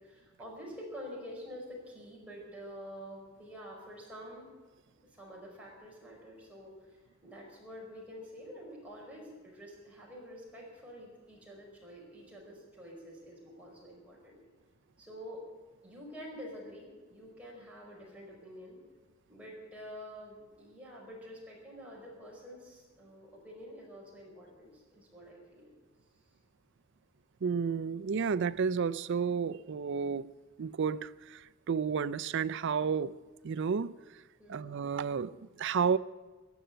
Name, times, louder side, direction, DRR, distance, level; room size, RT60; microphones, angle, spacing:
voice 1, 0.0-4.5 5.1-14.4 15.0-15.4 15.8-18.8 19.3-25.7 34.4-34.8, equal, 5° right, -3 dB, 4.8 m, -48 dB
voice 2, 27.4-30.3 30.6-33.9 34.5-36.0, right 6 dB, 60° right, 15 dB, 0.4 m, -31 dB
15.5 x 10.5 x 7.8 m, 1.3 s
head